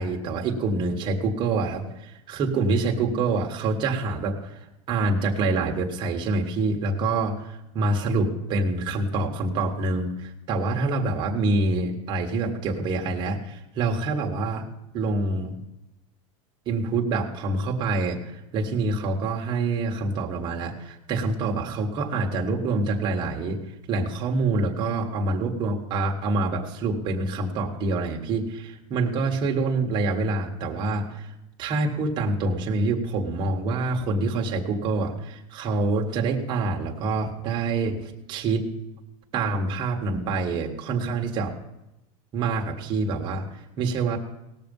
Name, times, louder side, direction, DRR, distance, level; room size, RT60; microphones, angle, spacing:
voice 1, 0.0-4.6 4.9-14.7 14.9-15.5 16.7-23.6 23.9-31.3 31.6-38.7 39.3-41.5 42.3-43.4 43.8-44.2, right 3 dB, 25° right, 1 dB, 1.5 m, -26 dB
18.5 x 6.8 x 5.3 m, 0.92 s
supercardioid pair, 175°, 18 cm